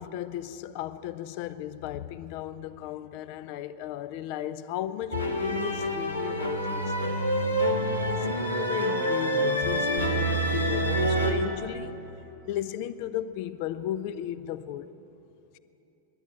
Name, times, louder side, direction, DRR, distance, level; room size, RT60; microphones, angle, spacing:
voice 1, 0.0-7.1 8.0-12.1 12.5-14.9, left 11 dB, 45° left, 0.5 m, -35 dB
sound 1, 5.1-11.3, right 1 dB, 75° left, 1.2 m, -27 dB
12.5 x 10.5 x 8.9 m
figure-of-eight pair, 90°, 0 cm